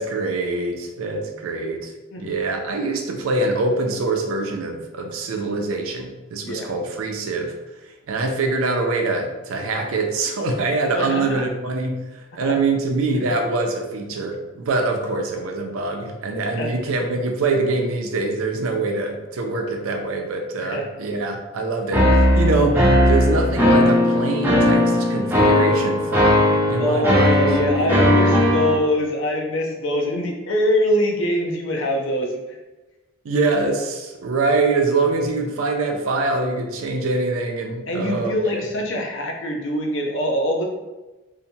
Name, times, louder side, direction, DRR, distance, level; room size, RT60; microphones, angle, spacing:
voice 1, 0.0-1.9 2.2-7.5 8.1-27.4 27.8-28.2 33.2-38.6, right 3 dB, 75° right, 3 dB, 0.4 m, -24 dB
voice 2, 10.9-11.2 12.4-12.5 16.6-16.7 20.6-20.8 26.8-32.3 37.9-40.6, equal, 60° left, 1 dB, 0.5 m, -23 dB
sound 1, 21.9-28.8, left 1 dB, 10° right, 0.4 m, -17 dB
2.7 x 2.1 x 2.7 m, 1.1 s
head